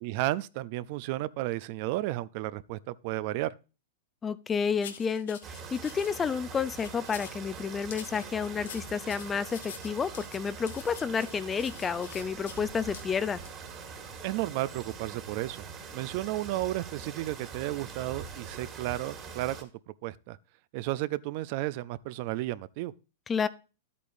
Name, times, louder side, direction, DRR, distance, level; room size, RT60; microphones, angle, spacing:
voice 1, 0.0-3.5 14.2-15.6 15.9-19.7 20.0-20.4 20.7-22.9, right 16 dB, 50° right, 0.4 m, -33 dB
voice 2, 4.2-13.4 23.3-23.5, left 6 dB, 15° left, 0.4 m, -30 dB
sound 1, 4.8-6.1 6.6-7.4 7.9-12.6 12.9-13.1 13.5-13.6, left 8 dB, 75° left, 1.3 m, -46 dB
sound 2, 5.4-19.6, right 5 dB, 25° right, 1.9 m, -43 dB
11.0 x 8.4 x 2.6 m
hypercardioid pair, 140°, 0 cm